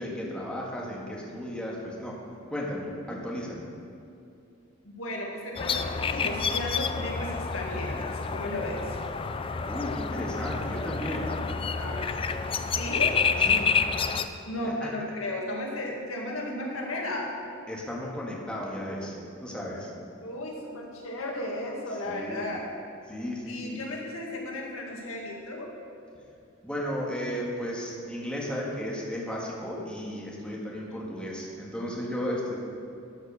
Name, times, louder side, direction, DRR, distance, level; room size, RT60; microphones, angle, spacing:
voice 1, 0.0-2.2 2.5-3.7 9.6-11.3 13.5-13.7 14.8-14.9 17.7-19.1 19.4-19.9 22.0-22.4 23.1-23.8 26.6-32.6, equal, 5° left, -4 dB, 1.7 m, -34 dB
voice 2, 4.8-9.0 11.7-12.1 12.7-13.1 14.4-17.3 20.2-22.7 23.5-25.7 30.9-31.2, left 1 dB, 90° left, -1 dB, 2.0 m, -34 dB
sound 1, 5.6-14.3, left 5 dB, 25° left, 0.4 m, -29 dB
12.0 x 6.3 x 6.3 m, 2.6 s
head